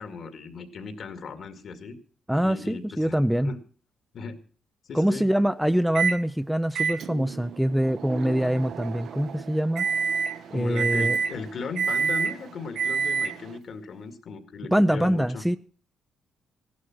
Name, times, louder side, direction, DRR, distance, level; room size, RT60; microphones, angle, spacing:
voice 1, 0.0-2.0 2.4-3.2 3.4-3.6 4.1-4.4 4.9-5.3 10.5-15.4, left 4 dB, 60° left, 9 dB, 2.2 m, -37 dB
voice 2, 2.3-3.5 4.9-9.9 10.5-11.2 14.7-15.6, equal, 5° right, 11 dB, 0.6 m, -24 dB
Microwave oven, 6.0-6.2 6.8-13.6, right 5 dB, 70° right, 1.0 m, -29 dB
15.0 x 11.5 x 6.1 m, 0.41 s
cardioid pair, 90°, 0 cm